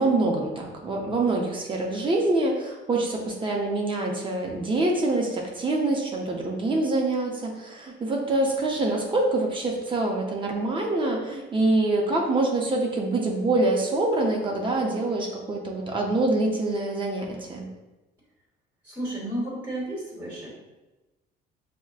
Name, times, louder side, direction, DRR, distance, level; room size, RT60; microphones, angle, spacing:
voice 1, 0.0-17.7, right 2 dB, 30° right, 0 dB, 0.6 m, -25 dB
voice 2, 18.8-20.5, right 1 dB, 15° right, -4 dB, 1.1 m, -32 dB
5.7 x 2.1 x 2.4 m, 1.1 s
cardioid pair, 110°, 17 cm